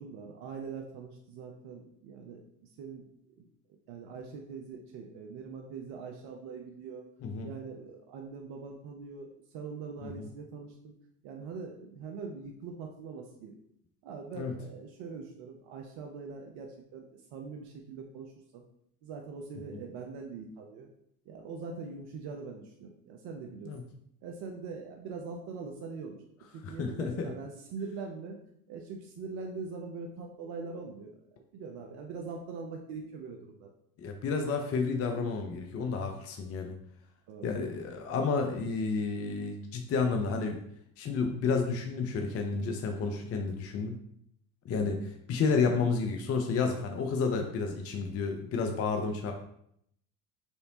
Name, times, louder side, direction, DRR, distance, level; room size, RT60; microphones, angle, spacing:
voice 1, 0.0-3.5 3.9-7.0 7.4-10.9 11.2-13.6 14.0-18.6 19.0-20.9 21.3-23.7 24.2-26.2 26.5-28.4 28.7-33.7 37.3-37.7, right 4 dB, 55° right, 2 dB, 0.7 m, -42 dB
voice 2, 26.6-27.3 34.0-36.7 37.4-40.6 41.0-44.0 44.7-49.3, left 4 dB, 30° left, 4 dB, 0.5 m, -31 dB
4.4 x 3.3 x 2.7 m, 0.72 s
hypercardioid pair, 65°, 49 cm